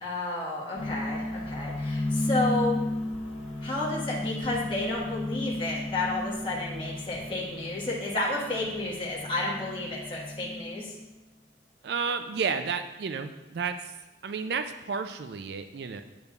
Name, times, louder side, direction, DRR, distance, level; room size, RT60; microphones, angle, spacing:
voice 1, 0.0-2.8 3.6-10.9, left 2 dB, 25° left, -6 dB, 1.3 m, -31 dB
sound 1, 0.8-11.0, left 1 dB, 90° left, 1.4 m, -34 dB
voice 2, 11.8-13.9 14.2-16.0, right 5 dB, 60° right, 8 dB, 0.3 m, -31 dB
8.6 x 6.6 x 2.3 m, 1.0 s
head